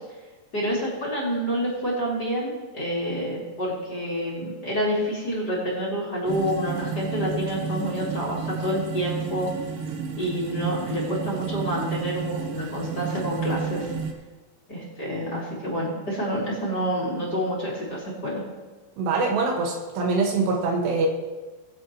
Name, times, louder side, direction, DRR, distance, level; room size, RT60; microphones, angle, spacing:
voice 1, 0.5-9.5 10.2-13.9 14.7-18.4, equal, 25° left, -5 dB, 3.0 m, -28 dB
sound 1, 6.3-14.1, right 5 dB, 70° right, 2.2 m, -32 dB
voice 2, 19.0-21.1, right 3 dB, 90° right, 1 dB, 3.8 m, -24 dB
22.0 x 7.9 x 3.1 m, 1.2 s
omnidirectional pair, 4.7 m